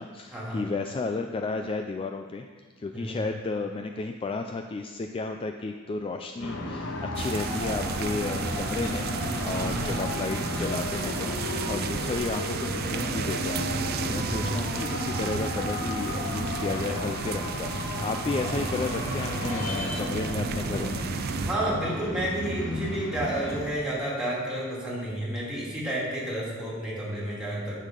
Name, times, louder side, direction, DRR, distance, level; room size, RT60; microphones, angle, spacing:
voice 1, 0.0-2.4 2.8-9.1 9.4-17.7 18.0-21.0, left 3 dB, 25° left, 5 dB, 0.3 m, -33 dB
sound 1, 6.4-23.7, left 1 dB, 65° left, 1.1 m, -33 dB
sound 2, 7.1-21.5, right 6 dB, 50° right, 0.4 m, -34 dB
voice 2, 14.2-14.6 21.4-27.8, right 1 dB, 5° right, -6 dB, 2.5 m, -31 dB
9.7 x 6.5 x 3.8 m, 1.5 s
head